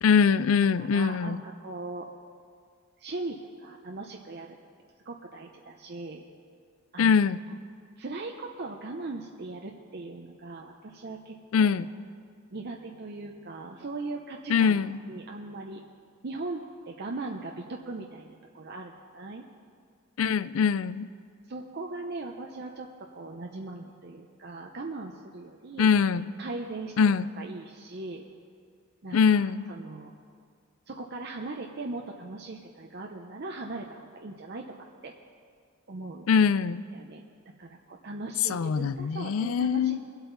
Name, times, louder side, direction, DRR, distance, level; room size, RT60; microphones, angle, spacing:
voice 1, 0.0-1.4 7.0-7.4 11.5-11.9 14.5-15.0 20.2-21.1 25.8-26.3 27.0-27.3 29.1-29.7 36.3-36.8 38.5-40.0, left 6 dB, 85° left, 16 dB, 0.4 m, -23 dB
voice 2, 0.8-2.1 3.0-4.6 5.0-6.2 6.9-7.2 7.5-7.6 8.0-11.7 12.5-15.8 16.2-19.4 21.5-22.9 23.1-25.9 26.4-27.1 27.4-28.2 29.0-30.1 30.9-34.6 35.0-35.1 35.9-36.5 36.9-37.2 37.6-40.0, right 2 dB, 55° right, 2 dB, 0.7 m, -39 dB
22.5 x 8.1 x 4.0 m, 2.2 s
head